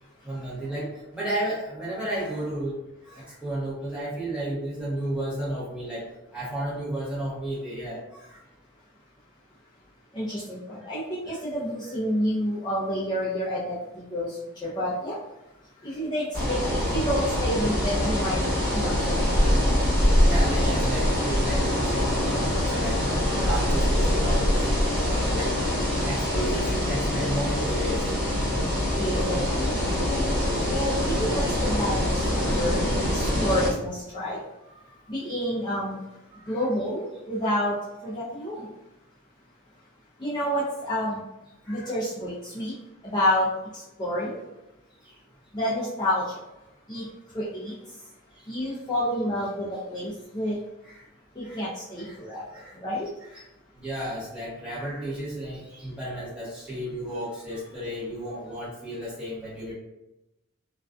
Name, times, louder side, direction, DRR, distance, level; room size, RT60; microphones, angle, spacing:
voice 1, 0.2-2.7 3.0-6.1 6.3-8.4 15.8-15.9 19.2-19.4 20.1-24.6 25.0-25.5 26.0-28.1 32.4-32.6 34.8-35.0 36.4-36.5 41.7-41.9 45.0-45.1 48.4-48.5 50.8-51.0 51.4-51.6 52.0-52.2 52.5-52.8 53.3-53.4 53.8-59.7, right 1 dB, 5° right, -8 dB, 0.8 m, -33 dB
voice 2, 10.1-15.2 15.8-18.4 18.7-19.2 28.9-30.0 30.7-32.9 33.1-34.4 35.1-36.0 36.5-38.7 40.2-41.2 41.7-42.7 43.0-44.4 45.5-46.4 46.9-48.1 48.5-50.6 51.3-53.1, equal, 20° left, -10 dB, 0.4 m, -29 dB
sound 1, 16.3-33.7, left 1 dB, 45° right, 1.1 m, -24 dB
2.4 x 2.2 x 2.3 m, 0.95 s
head